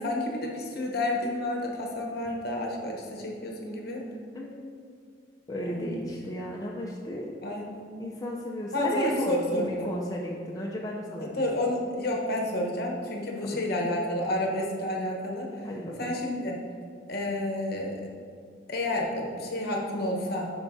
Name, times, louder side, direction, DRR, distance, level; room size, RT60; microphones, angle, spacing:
voice 1, 0.0-4.0 5.6-5.9 7.4-7.9 8.7-9.9 11.2-15.7 16.0-16.6 17.1-18.0 18.7-20.5, left 1 dB, 55° left, -1 dB, 1.0 m, -30 dB
voice 2, 4.3-4.9 5.5-7.3 8.0-11.3 15.6-16.1, equal, 20° left, -3 dB, 0.5 m, -34 dB
11.5 x 4.5 x 2.7 m, 2.2 s
head